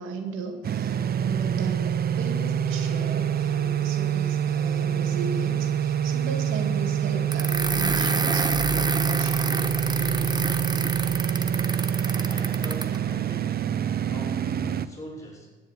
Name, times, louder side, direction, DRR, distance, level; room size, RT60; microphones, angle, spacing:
voice 1, 0.0-10.5, right 4 dB, 90° right, 6 dB, 2.2 m, -36 dB
sound 1, 0.6-14.9, right 8 dB, 50° right, 0.8 m, -26 dB
sound 2, 7.3-13.0, right 3 dB, 20° right, 1.0 m, -29 dB
voice 2, 12.3-15.5, equal, 15° left, -3 dB, 7.2 m, -43 dB
14.5 x 10.5 x 9.8 m, 1.2 s
cardioid pair, 90°, 20 cm